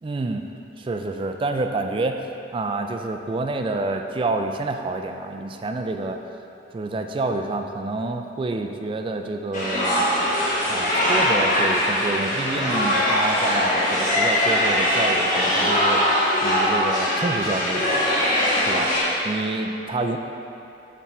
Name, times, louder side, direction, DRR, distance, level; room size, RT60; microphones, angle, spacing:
voice 1, 0.0-0.4 0.8-6.2 6.7-10.1 10.7-16.1 16.4-18.1 18.6-18.9 19.2-20.2, right 2 dB, 30° right, 5 dB, 0.3 m, -28 dB
sound 1, 9.5-19.0, left 1 dB, 45° left, 1.4 m, -21 dB
8.3 x 3.5 x 4.3 m, 2.7 s
head